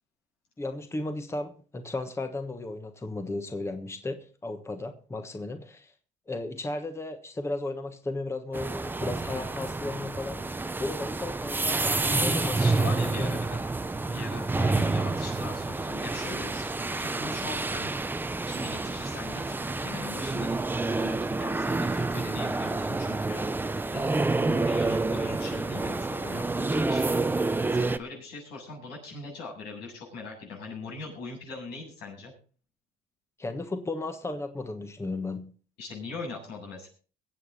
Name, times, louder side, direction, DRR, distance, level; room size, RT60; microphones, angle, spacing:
voice 1, 0.6-5.9 6.3-13.4 14.5-14.9 33.4-35.5, left 2 dB, 15° left, 7 dB, 1.3 m, -35 dB
sound 1, 8.5-28.0, right 3 dB, 10° right, 0.7 m, -28 dB
voice 2, 12.2-13.6 14.0-17.9 18.5-23.5 23.9-27.2 27.6-32.3 35.8-36.9, left 3 dB, 90° left, -2 dB, 7.7 m, -41 dB
22.5 x 8.4 x 4.1 m, 0.39 s
cardioid pair, 110°, 17 cm